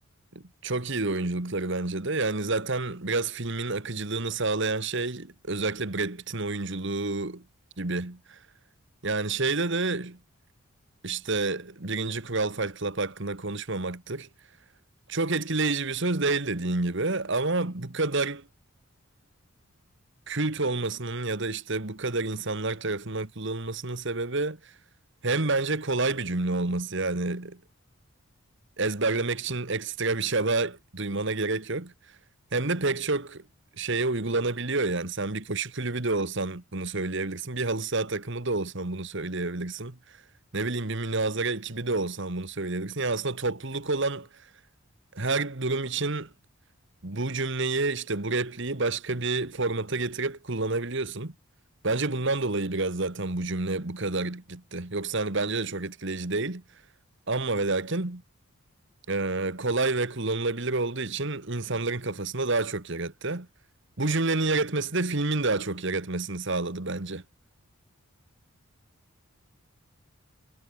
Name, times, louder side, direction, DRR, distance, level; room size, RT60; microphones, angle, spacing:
voice 1, 0.3-7.4 7.8-8.4 9.0-10.2 11.0-14.3 15.1-18.4 20.3-24.7 25.2-27.6 28.8-31.9 32.5-33.4 33.8-40.0 40.5-44.3 45.1-46.3 47.0-51.3 51.8-56.6 57.3-58.2 59.1-63.5 64.0-67.2, right 3 dB, 55° right, 1.6 m, -29 dB
head